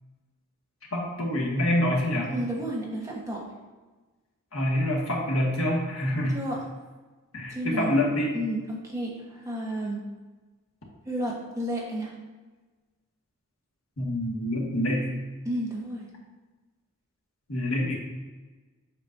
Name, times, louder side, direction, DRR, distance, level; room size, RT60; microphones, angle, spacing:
voice 1, 0.9-2.3 4.5-6.4 7.3-8.3 14.0-15.1 17.5-17.9, left 1 dB, 65° left, -3 dB, 1.7 m, -26 dB
voice 2, 2.2-3.4 6.3-6.7 7.5-7.9 8.3-10.0 11.0-12.1 15.4-16.1, right 1 dB, 15° right, -3 dB, 1.1 m, -32 dB
8.2 x 6.0 x 2.7 m, 1.3 s
head